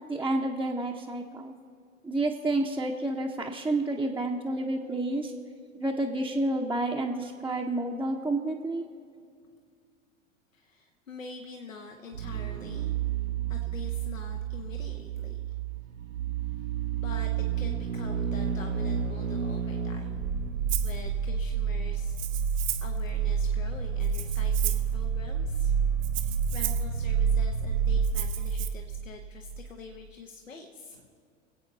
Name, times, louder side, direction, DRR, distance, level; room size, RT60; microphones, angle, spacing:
voice 1, 0.0-1.5 2.0-5.3 5.7-8.9, right 2 dB, 5° right, -2 dB, 0.7 m, -30 dB
voice 2, 10.5-13.0 13.5-15.4 15.7-15.8 16.9-20.2 20.8-22.2 22.8-25.8 26.1-31.1, left 4 dB, 80° left, 2 dB, 1.2 m, -45 dB
sound 1, 12.1-29.7 29.9-30.0, right 7 dB, 75° right, 0.8 m, -29 dB
Rattle (instrument), 20.7-21.0 22.1-23.0 24.0-24.9 26.0-26.9 28.0-28.7, right 15 dB, 40° right, 1.0 m, -35 dB
25.0 x 8.5 x 3.9 m, 2.3 s
figure-of-eight pair, 90°, 39 cm